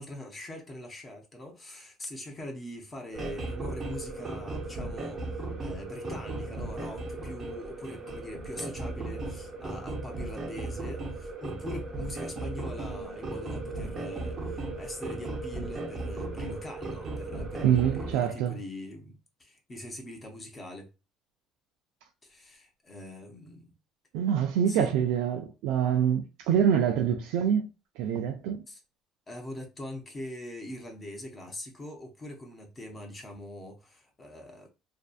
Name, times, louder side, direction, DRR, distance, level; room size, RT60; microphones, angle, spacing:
voice 1, 0.0-20.9 22.2-23.7 24.7-24.9 28.7-28.8 29.3-34.7, left 1 dB, 20° left, 0.6 m, -42 dB
sound 1, 3.1-18.1, right 2 dB, 30° right, 0.5 m, -36 dB
voice 2, 17.6-18.6 24.1-27.7 28.0-28.6, right 8 dB, 85° right, 0.3 m, -25 dB
2.6 x 2.3 x 2.3 m
cardioid pair, 155°, 0 cm